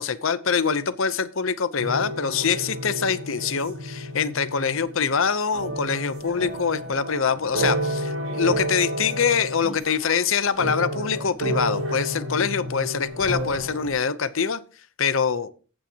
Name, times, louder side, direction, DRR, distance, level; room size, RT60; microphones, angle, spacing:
voice 1, 0.0-14.6 15.0-15.5, left 6 dB, 65° left, 13 dB, 0.7 m, -24 dB
sound 1, 1.8-5.1 5.5-10.2 10.5-13.9, equal, 85° right, 4.9 m, -30 dB
15.5 x 8.8 x 2.9 m, 0.36 s
head